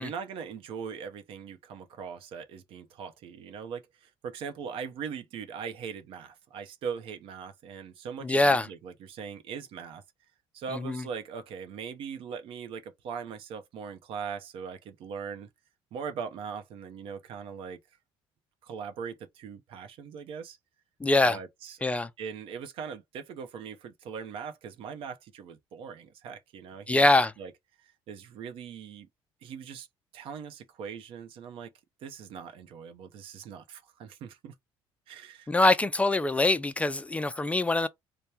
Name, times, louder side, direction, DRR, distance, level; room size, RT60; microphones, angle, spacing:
voice 1, 0.0-10.0 10.5-15.5 15.9-17.8 18.6-20.6 21.2-21.8 22.2-27.0 27.4-27.5 27.8-29.1 29.4-29.9 30.1-31.7 32.0-34.5 35.1-35.5, right 6 dB, 65° right, 0.7 m, -40 dB
voice 2, 8.2-8.7 10.7-11.0 21.0-21.4 21.8-22.1 26.9-27.3 35.5-37.9, left 2 dB, 15° left, 0.3 m, -24 dB
3.4 x 2.1 x 4.2 m
cardioid pair, 120°, 10 cm